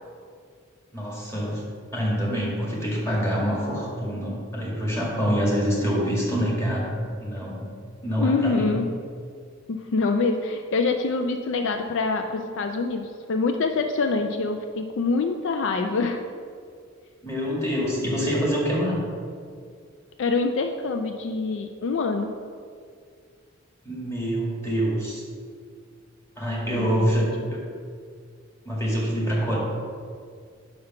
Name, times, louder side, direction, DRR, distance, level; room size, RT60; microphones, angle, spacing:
voice 1, 0.9-1.6 1.9-7.7 8.0-8.7 17.2-19.0 23.8-25.2 26.4-27.6 28.6-29.6, equal, 15° left, -4 dB, 1.8 m, -26 dB
voice 2, 8.2-8.9 9.7-16.2 20.2-22.3 26.7-27.5, left 3 dB, 65° left, 5 dB, 0.4 m, -25 dB
5.6 x 5.1 x 5.7 m, 2.1 s
head